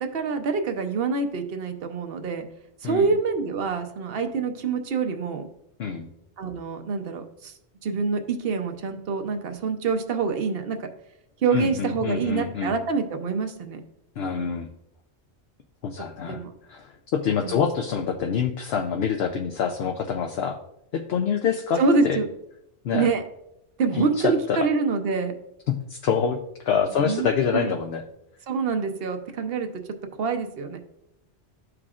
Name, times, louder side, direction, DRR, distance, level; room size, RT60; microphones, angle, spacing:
voice 1, 0.1-2.5 2.8-5.5 6.4-7.5 7.8-10.9 11.4-13.8 16.3-16.5 17.4-17.6 21.8-22.3 22.9-23.2 23.8-25.3 27.0-27.3 27.5-27.7 28.5-29.7 30.2-30.8, right 4 dB, 60° right, 7 dB, 0.9 m, -26 dB
voice 2, 11.5-12.7 14.2-14.7 15.8-16.4 16.7-20.6 20.9-21.8 22.0-22.2 22.8-23.1 23.9-24.7 25.7-26.4 26.6-28.0, left 7 dB, 65° left, 4 dB, 0.8 m, -26 dB
12.5 x 4.8 x 2.4 m, 0.83 s
omnidirectional pair, 1.2 m